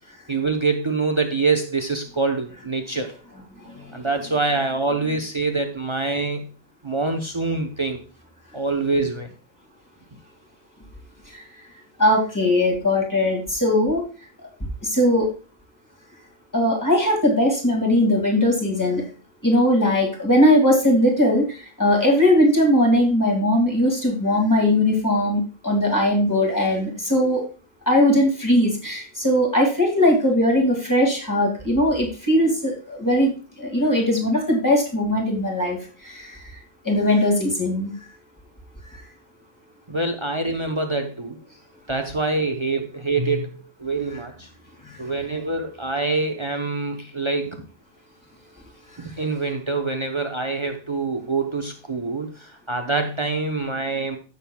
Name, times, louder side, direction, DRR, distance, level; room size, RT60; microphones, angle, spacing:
voice 1, 0.3-3.1 3.9-6.5 6.8-8.0 8.5-9.3 39.9-41.4 41.9-44.5 45.0-47.7 49.0-54.2, right 3 dB, 30° right, 5 dB, 0.9 m, -25 dB
voice 2, 12.0-14.0 14.8-15.3 16.5-19.0 19.4-27.4 27.9-33.3 33.6-36.6 36.8-38.1 44.8-45.1, left 1 dB, 20° left, 0 dB, 2.2 m, -20 dB
15.0 x 6.6 x 2.3 m, 0.36 s
omnidirectional pair, 1.0 m